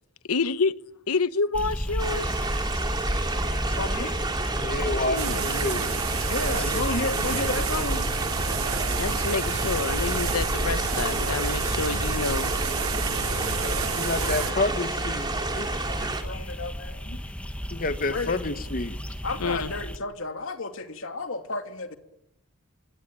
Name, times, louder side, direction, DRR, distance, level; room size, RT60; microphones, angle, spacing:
voice 1, 0.3-0.7 1.1-2.4 4.8-5.4 9.0-12.5 19.4-19.7, left 4 dB, 80° left, 0.9 m, -28 dB
sound 1, 1.5-20.0, equal, 5° left, 1.3 m, -33 dB
sound 2, 2.0-16.2, right 2 dB, 20° right, 3.2 m, -30 dB
voice 2, 3.8-4.2 6.3-8.1 11.5-12.7 13.0-14.7 15.9-17.2 18.1-18.4 19.2-22.0, left 3 dB, 65° left, 2.7 m, -33 dB
voice 3, 4.6-6.0 14.0-15.7 17.7-19.0, left 2 dB, 40° left, 1.2 m, -29 dB
sound 3, 5.2-14.5, right 7 dB, 70° right, 1.8 m, -32 dB
27.0 x 23.5 x 9.0 m
head